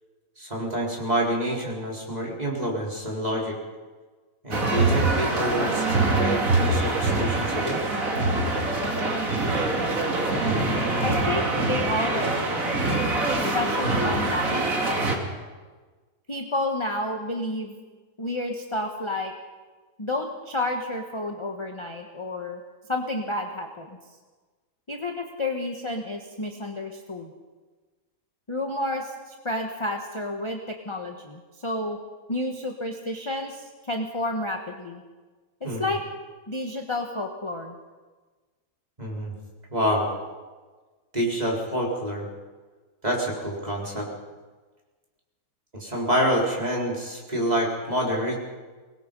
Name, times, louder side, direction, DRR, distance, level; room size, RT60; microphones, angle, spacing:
voice 1, 0.4-3.6 4.4-7.8 35.6-35.9 39.0-39.3 39.7-40.1 41.1-42.2 43.0-44.1 45.7-48.4, equal, 25° right, -3 dB, 4.6 m, -27 dB
sound 1, 4.5-15.2, right 2 dB, 60° right, 2.9 m, -24 dB
voice 2, 11.0-12.9 13.3-14.7 16.3-17.7 18.2-19.3 20.0-22.6 22.9-24.0 24.9-27.3 28.5-32.0 32.3-35.0 35.6-36.0 36.5-37.8, left 1 dB, 20° left, 2 dB, 1.3 m, -30 dB
24.5 x 20.0 x 5.4 m, 1.3 s
omnidirectional pair, 1.6 m